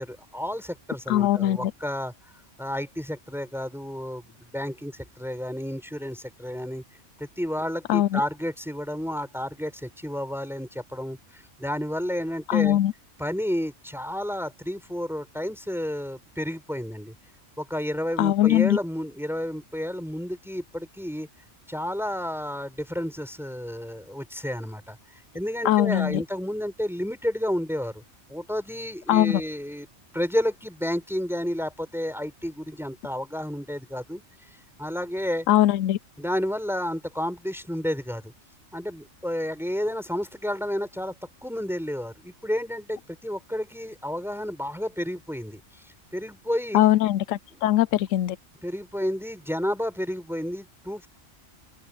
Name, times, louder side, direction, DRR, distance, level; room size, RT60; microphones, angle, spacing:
voice 1, 0.0-2.1 2.6-6.8 7.2-12.8 13.2-17.1 17.6-21.3 21.7-25.0 25.3-28.0 28.3-29.9 30.1-34.2 34.8-35.5 36.2-38.3 38.7-41.1 41.4-46.8 47.5-47.6 48.6-51.1, equal, ahead, 4.7 m, -31 dB
voice 2, 1.1-1.7 7.9-8.2 12.5-12.9 18.2-18.8 25.6-26.2 29.1-29.4 35.5-36.0 46.7-48.4, left 13 dB, 85° left, 1.0 m, -21 dB
open air
omnidirectional pair, 1.3 m